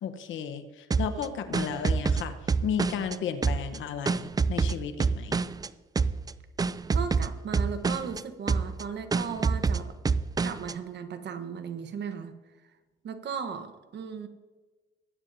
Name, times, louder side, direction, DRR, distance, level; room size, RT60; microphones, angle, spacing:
voice 1, 0.0-5.4, left 7 dB, 80° left, 9 dB, 1.0 m, -34 dB
sound 1, 0.9-3.2 3.4-5.7 6.0-6.3 6.6-8.2 8.5-8.8 9.1-10.7, right 4 dB, 20° right, 0.3 m, -27 dB
voice 2, 6.9-10.0 10.4-12.3 13.0-14.3, right 6 dB, 60° right, 9 dB, 1.1 m, -36 dB
19.5 x 9.4 x 2.7 m, 1.3 s
cardioid pair, 90°, 20 cm